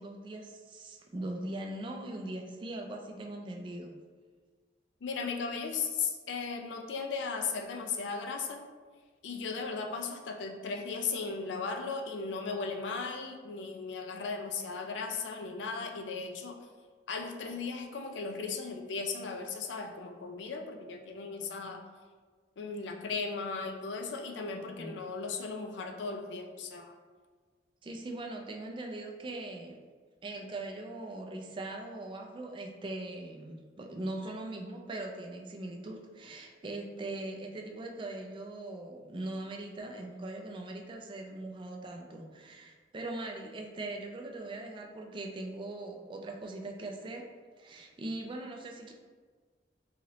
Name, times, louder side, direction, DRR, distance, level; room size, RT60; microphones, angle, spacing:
voice 1, 0.0-3.9 24.5-25.0 27.8-29.8 30.2-47.2 47.6-48.9, right 2 dB, 30° right, 2 dB, 0.3 m, -41 dB
voice 2, 5.0-8.6 9.2-16.6 17.1-21.8 22.6-26.9, left 4 dB, 85° left, 4 dB, 0.4 m, -36 dB
2.8 x 2.8 x 2.9 m, 1.5 s
head